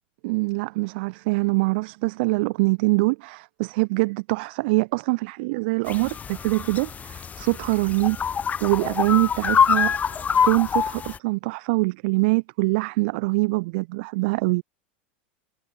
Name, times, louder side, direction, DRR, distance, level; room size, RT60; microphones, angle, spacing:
voice 1, 0.2-8.2 8.6-14.6, right 26 dB, 65° right, 0.9 m, -24 dB
sound 1, 5.9-11.2, left 7 dB, 25° left, 1.4 m, -25 dB
hypercardioid pair, 110°, 6 cm